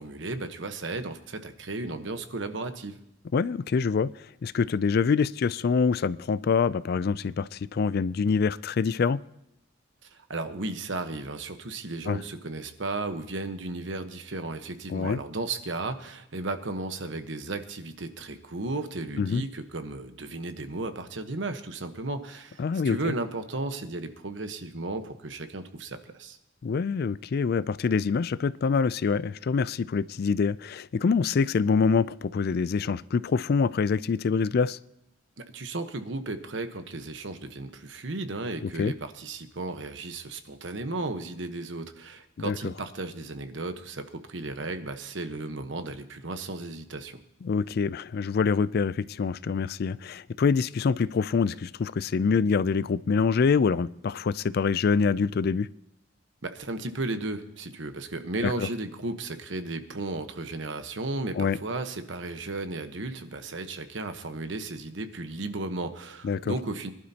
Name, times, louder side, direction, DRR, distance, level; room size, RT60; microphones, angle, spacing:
voice 1, 0.0-3.0 10.0-26.4 35.4-47.2 56.4-66.9, right 2 dB, 70° right, 8 dB, 1.1 m, -34 dB
voice 2, 3.3-9.2 12.1-12.2 14.9-15.2 19.2-19.4 22.6-23.1 26.6-34.8 38.6-38.9 42.4-42.7 47.4-55.7 58.4-58.7 61.4-61.6 66.2-66.5, left 5 dB, 55° left, 18 dB, 0.3 m, -25 dB
22.5 x 11.5 x 2.8 m, 0.86 s
head